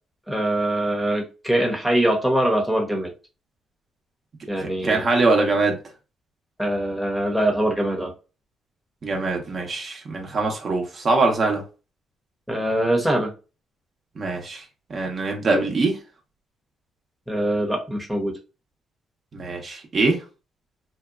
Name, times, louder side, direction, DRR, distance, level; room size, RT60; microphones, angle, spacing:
voice 1, 0.3-3.1 4.5-5.0 6.6-8.1 12.5-13.3 17.3-18.4, right 1 dB, ahead, 0.8 m, -23 dB
voice 2, 4.6-5.8 9.0-11.6 14.2-14.6 14.9-16.0 19.3-20.2, right 3 dB, 45° right, 0.7 m, -23 dB
2.7 x 2.2 x 2.3 m
cardioid pair, 90°, 0 cm